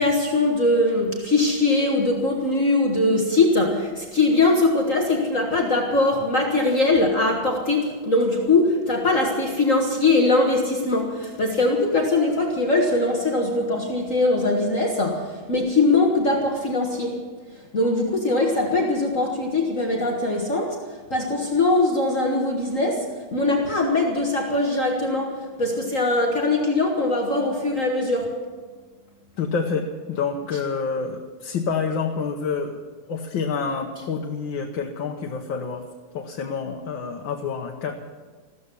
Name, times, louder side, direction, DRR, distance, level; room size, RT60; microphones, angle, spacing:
voice 1, 0.0-17.2 17.7-20.8 21.1-28.4, left 2 dB, 40° left, 0 dB, 1.9 m, -21 dB
voice 2, 29.4-32.8 33.1-35.8 36.1-37.9, left 5 dB, 70° left, 2 dB, 1.8 m, -28 dB
15.0 x 14.0 x 6.9 m, 1.4 s
omnidirectional pair, 2.2 m